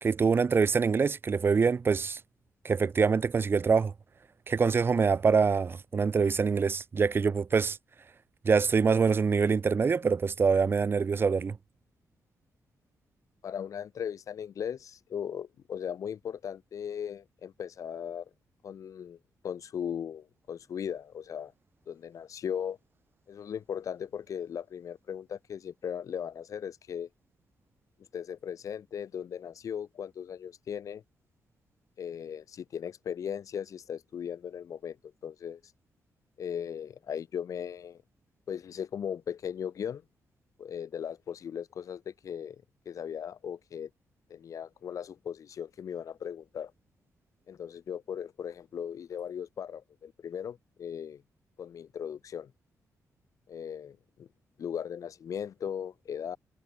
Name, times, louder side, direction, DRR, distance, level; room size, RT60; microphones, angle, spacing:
voice 1, 0.0-2.2 2.6-3.9 4.5-7.8 8.4-11.6, right 5 dB, 40° right, 3.1 m, -25 dB
voice 2, 13.4-18.2 18.6-19.2 19.4-21.5 21.9-22.8 23.3-27.1 28.1-31.0 32.0-35.0 35.2-35.6 36.4-38.0 38.5-40.0 40.6-43.9 44.3-46.7 47.5-51.2 51.6-52.5 53.5-54.3 54.6-56.4, left 8 dB, 65° left, 6.7 m, -38 dB
wide cardioid pair, 130°, 6 cm